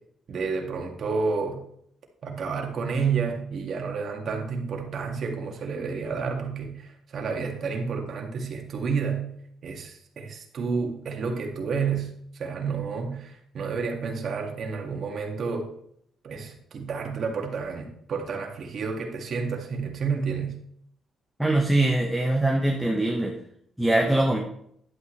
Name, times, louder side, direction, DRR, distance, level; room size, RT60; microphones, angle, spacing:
voice 1, 0.3-1.6 2.2-9.3 9.6-15.7 16.2-20.5, right 5 dB, 55° right, 2 dB, 2.1 m, -30 dB
voice 2, 21.4-23.3 23.8-24.4, right 1 dB, 5° right, 0 dB, 1.4 m, -22 dB
11.0 x 8.7 x 3.3 m, 0.70 s
cardioid pair, 90°, 0 cm